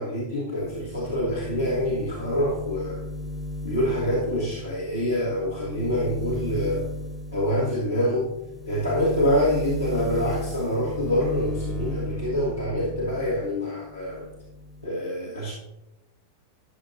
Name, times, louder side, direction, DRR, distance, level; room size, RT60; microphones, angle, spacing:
voice 1, 0.0-3.1 3.6-6.9 7.3-8.3 8.7-14.3 14.8-15.5, equal, 85° left, -5 dB, 1.4 m, -26 dB
sound 1, 0.6-13.5 13.9-14.9, left 1 dB, 10° left, 0.9 m, -35 dB
11.5 x 6.5 x 2.6 m, 0.94 s
figure-of-eight pair, 90°, 0 cm